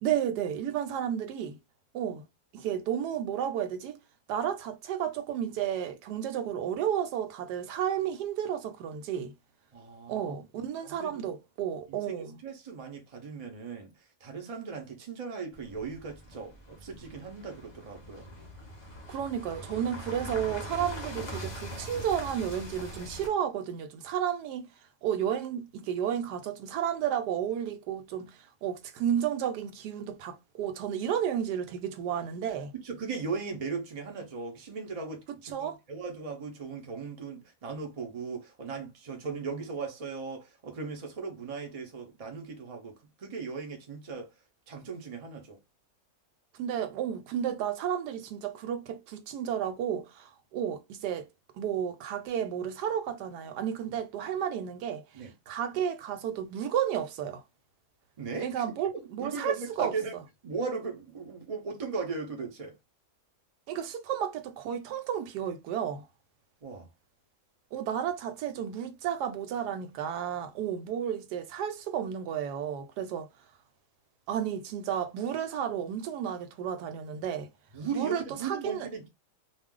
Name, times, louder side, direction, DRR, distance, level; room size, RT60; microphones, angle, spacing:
voice 1, 0.0-1.6 1.9-2.3 2.5-4.0 4.3-9.3 10.1-12.4 19.1-24.7 25.0-32.7 35.5-35.8 46.5-51.3 51.5-55.0 55.5-57.4 58.4-59.9 63.7-66.1 67.7-73.3 74.3-77.5 77.9-78.9, right 9 dB, 80° right, 1.1 m, -32 dB
voice 2, 9.7-10.4 10.8-11.3 11.9-13.9 14.2-18.3 32.7-42.9 43.2-44.3 44.7-45.6 55.1-55.3 58.2-58.6 59.2-62.7 66.6-66.9 77.7-79.1, right 4 dB, 65° right, 0.3 m, -38 dB
sound 1, 15.5-23.3, equal, 30° left, 0.5 m, -42 dB
2.5 x 2.3 x 3.6 m
omnidirectional pair, 1.7 m